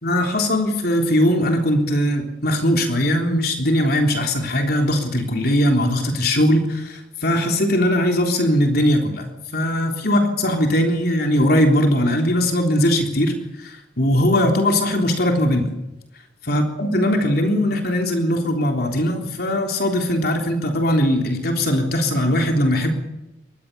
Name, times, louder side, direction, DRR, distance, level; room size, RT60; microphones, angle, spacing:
voice 1, 0.0-9.3 9.5-15.7 16.5-22.9, left 1 dB, 55° left, 2 dB, 3.6 m, -20 dB
25.0 x 20.0 x 6.9 m, 0.95 s
head